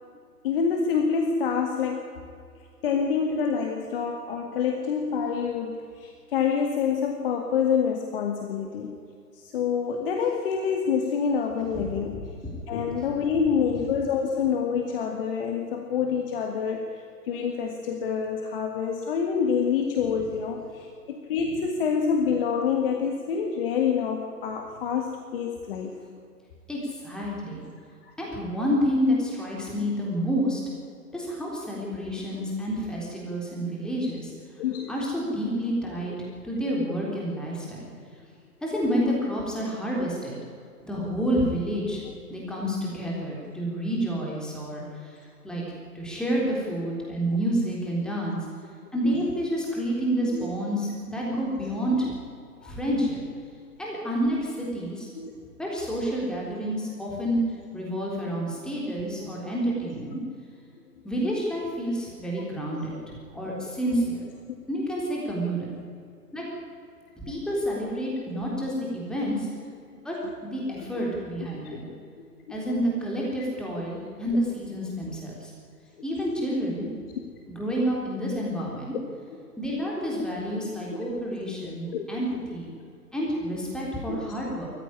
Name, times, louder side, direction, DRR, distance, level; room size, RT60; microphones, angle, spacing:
voice 1, 0.4-2.1 2.8-9.0 9.3-12.3 12.7-16.9 17.3-25.9 28.0-28.1 34.6-34.9 49.0-49.2 50.3-50.5 52.6-52.7 55.2-55.3 59.2-59.4 62.3-62.5 71.0-71.1 71.9-72.0 81.9-82.0 84.1-84.2, left 6 dB, 35° left, 3 dB, 1.9 m, -27 dB
voice 2, 12.9-13.4 26.7-27.7 28.2-30.6 31.1-34.3 34.9-36.2 36.4-37.9 38.6-40.4 40.8-42.0 42.3-45.6 45.9-48.4 48.9-52.1 52.6-53.2 53.8-55.1 55.6-57.4 57.7-60.2 61.0-64.3 64.7-65.8 66.3-66.5 67.2-69.5 70.0-70.2 70.4-71.9 72.5-75.5 76.0-76.9 77.5-79.0 79.6-82.7 83.1-84.7, equal, ahead, -4 dB, 3.7 m, -29 dB
22.5 x 14.5 x 9.9 m, 2.3 s
figure-of-eight pair, 125°, 48 cm